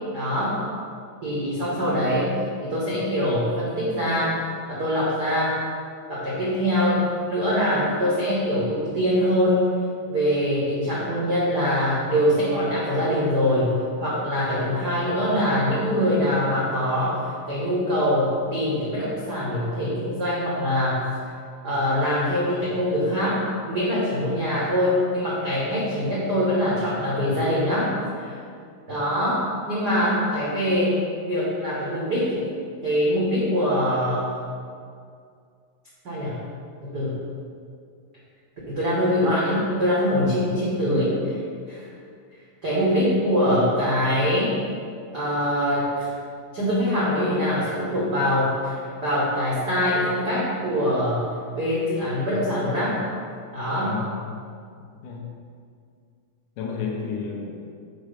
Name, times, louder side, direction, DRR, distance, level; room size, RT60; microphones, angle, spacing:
voice 1, 0.1-0.6 1.2-2.3 2.6-4.4 4.7-5.6 6.1-9.7 10.1-17.2 17.5-21.0 21.6-27.9 28.2-28.4 28.9-31.0 31.2-32.4 32.8-34.3 36.0-36.3 36.8-37.1 38.7-41.4 41.7-41.8 42.6-44.5 45.1-46.1 46.5-48.7 49.0-51.2 51.5-53.0 53.5-53.9, equal, 85° right, -8 dB, 0.9 m, -23 dB
voice 2, 53.8-54.4 54.8-55.3 56.6-57.5, left 5 dB, 75° left, 0 dB, 2.1 m, -32 dB
6.4 x 5.1 x 5.0 m, 2.2 s
omnidirectional pair, 4.0 m